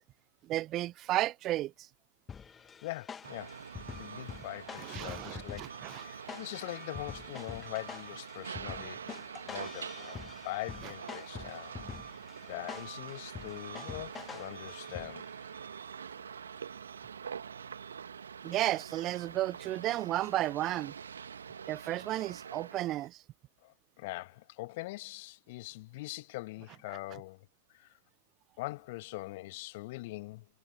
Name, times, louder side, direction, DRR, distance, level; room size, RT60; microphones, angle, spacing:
voice 1, 0.4-1.7 4.8-6.0 18.4-20.9 21.7-23.2, right 15 dB, 30° right, 0.7 m, -33 dB
sound 1, 2.3-15.4, left 6 dB, 15° left, 1.1 m, -47 dB
voice 2, 2.8-3.6 3.9-5.6 5.9-9.0 9.4-11.7 12.5-15.3 23.6-27.9 28.6-30.5, left 21 dB, 45° left, 1.5 m, -42 dB
sound 2, 3.2-23.1, right 7 dB, 65° right, 2.1 m, -45 dB
figure-of-eight pair, 110°, 0 cm